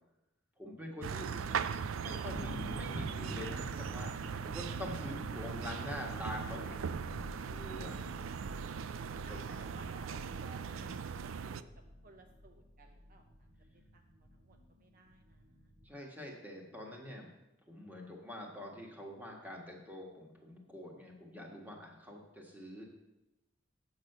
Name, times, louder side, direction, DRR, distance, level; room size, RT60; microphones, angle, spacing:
voice 1, 0.6-1.7 1.9-6.8 7.5-8.1 9.3-9.4 15.8-17.3 17.7-22.9, left 1 dB, 10° right, 0 dB, 1.6 m, -45 dB
sound 1, 1.0-11.6, right 6 dB, 90° right, 0.4 m, -39 dB
sound 2, 2.2-15.9, left 1 dB, 75° right, 3.7 m, -50 dB
voice 2, 8.9-11.6 12.0-13.5 13.9-15.7, right 2 dB, 45° right, 4 dB, 0.7 m, -58 dB
8.4 x 6.3 x 6.7 m, 0.97 s
head